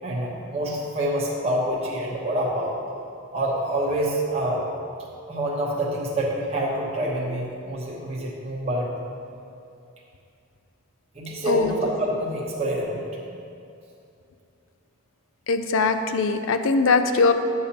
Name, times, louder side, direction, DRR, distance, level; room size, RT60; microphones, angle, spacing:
voice 1, 0.0-2.8 3.3-4.6 5.3-8.9 11.1-13.1, right 1 dB, 30° right, -5 dB, 0.9 m, -27 dB
voice 2, 15.5-17.3, left 4 dB, 65° left, 8 dB, 0.4 m, -21 dB
10.5 x 6.7 x 2.8 m, 2.6 s
head